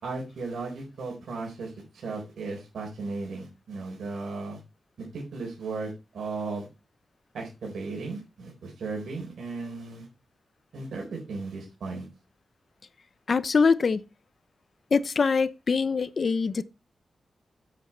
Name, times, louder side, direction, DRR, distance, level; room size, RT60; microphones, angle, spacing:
voice 1, 0.0-4.6 5.0-6.7 7.3-10.1 10.7-12.1, right 3 dB, 90° right, 4.1 m, -36 dB
voice 2, 13.3-14.1 14.9-16.6, left 5 dB, 50° left, 0.6 m, -23 dB
8.3 x 8.2 x 4.3 m
wide cardioid pair, 130°, 0 cm